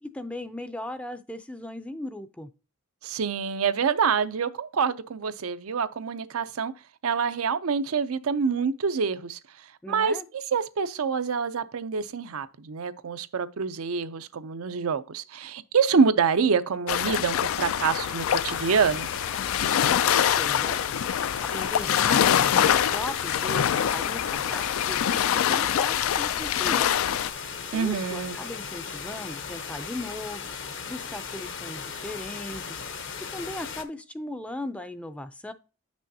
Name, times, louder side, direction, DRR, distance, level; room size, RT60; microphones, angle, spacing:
voice 1, 0.0-2.5 9.8-10.3 19.8-20.8 21.2-27.0 27.7-30.5 30.9-32.8 33.3-35.5, left 1 dB, 5° left, 0.4 m, -38 dB
voice 2, 3.0-6.7 7.0-9.4 9.9-19.1 27.7-28.4, right 6 dB, 85° right, 0.5 m, -26 dB
sound 1, 16.9-27.3, left 9 dB, 75° left, 0.3 m, -25 dB
sound 2, 18.2-33.8, left 6 dB, 55° left, 0.9 m, -37 dB
8.4 x 6.2 x 2.7 m
head